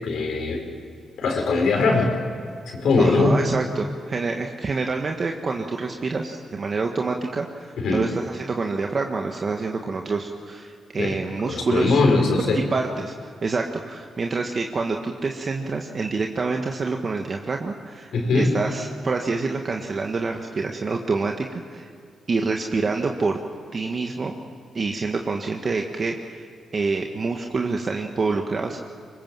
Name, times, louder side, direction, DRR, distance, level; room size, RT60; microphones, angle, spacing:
voice 1, 0.0-0.6 1.2-2.1 2.7-3.4 7.8-8.0 11.0-11.1 11.4-12.6 18.1-18.5, left 3 dB, 75° left, 2 dB, 4.8 m, -20 dB
voice 2, 3.0-12.0 12.5-21.9 22.3-23.4 23.7-24.3 24.7-26.5 26.7-28.8, right 4 dB, 45° right, 2 dB, 1.5 m, -27 dB
24.5 x 21.0 x 7.6 m, 2.4 s
cardioid pair, 70°, 0 cm